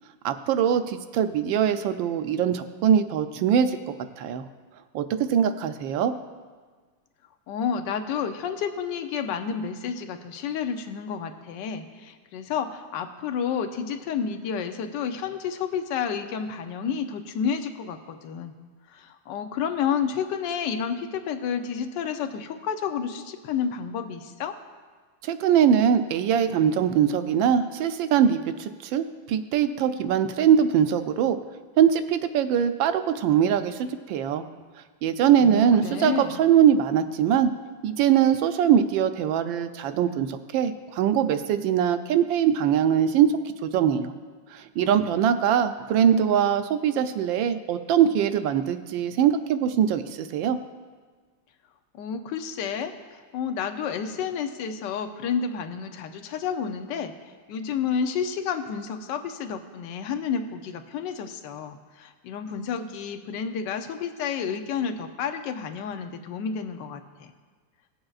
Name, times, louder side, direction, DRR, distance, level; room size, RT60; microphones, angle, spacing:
voice 1, 0.2-3.8 4.2-4.4 4.9-5.0 5.3-6.1 25.2-31.4 31.8-34.4 35.0-37.5 37.8-43.3 43.6-44.1 44.5-50.6, right 8 dB, 80° right, 9 dB, 1.3 m, -22 dB
voice 2, 7.5-18.5 18.9-24.5 35.4-36.4 51.9-57.1 57.5-67.3, left 7 dB, 70° left, 7 dB, 1.3 m, -30 dB
18.5 x 7.7 x 2.4 m, 1.5 s
omnidirectional pair, 2.1 m